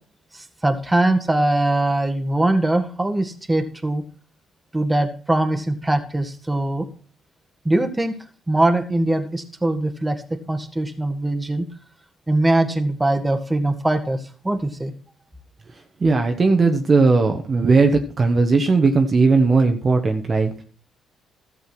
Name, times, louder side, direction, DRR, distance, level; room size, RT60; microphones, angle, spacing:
voice 1, 0.3-4.1 4.7-6.9 7.7-8.2 8.5-11.7 12.3-14.9, right 1 dB, 10° right, 5 dB, 1.8 m, -22 dB
voice 2, 16.0-20.6, right 4 dB, 35° right, 4 dB, 1.4 m, -17 dB
13.5 x 6.9 x 6.1 m, 0.40 s
cardioid pair, 90°, 0 cm